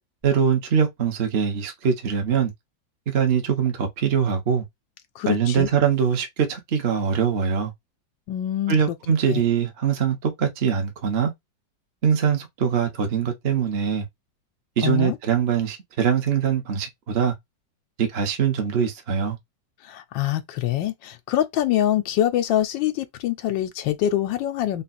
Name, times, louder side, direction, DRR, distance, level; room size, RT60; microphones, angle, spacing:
voice 1, 0.2-2.5 3.1-4.6 5.3-7.7 8.7-11.3 12.0-14.1 14.8-17.3 18.0-19.4, right 7 dB, 40° right, 1.0 m, -22 dB
voice 2, 5.1-5.7 8.3-9.0 9.3-9.4 14.8-15.2 19.8-24.8, left 12 dB, 85° left, 1.3 m, -24 dB
3.7 x 2.4 x 4.1 m
omnidirectional pair, 2.0 m